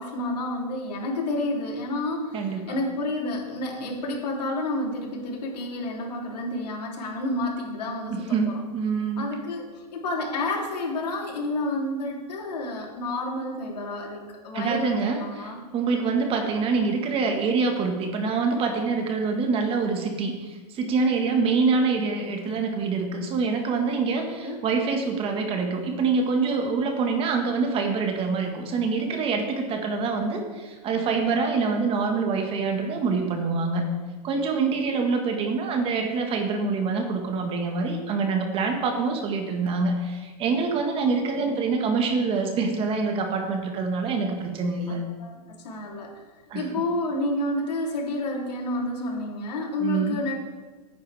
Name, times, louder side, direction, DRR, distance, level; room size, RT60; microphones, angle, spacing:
voice 1, 0.0-8.6 9.2-15.6 24.2-24.6 41.4-41.7 44.9-46.2 46.5-50.4, left 1 dB, 90° left, -1 dB, 3.4 m, -30 dB
voice 2, 2.3-2.8 8.1-9.3 14.5-33.8 34.2-45.0 46.5-46.7 49.8-50.2, right 4 dB, 25° right, 4 dB, 1.7 m, -25 dB
15.0 x 9.5 x 3.5 m, 1.3 s
supercardioid pair, 145°, 20 cm